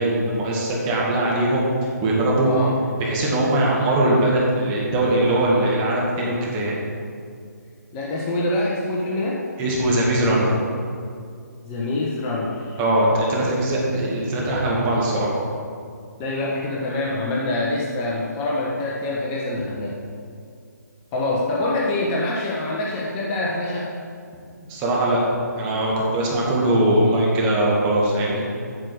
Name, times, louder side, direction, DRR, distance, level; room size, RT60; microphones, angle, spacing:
voice 1, 0.0-1.6 2.0-2.5 3.0-6.8 9.6-10.5 12.8-15.3 24.7-25.2 25.6-28.4, right 1 dB, 20° right, -4 dB, 2.1 m, -21 dB
voice 2, 7.9-9.4 11.6-12.8 16.2-19.9 21.1-23.9, left 2 dB, 20° left, -4 dB, 1.3 m, -25 dB
8.9 x 6.6 x 6.5 m, 2.3 s
figure-of-eight pair, 140°, 10 cm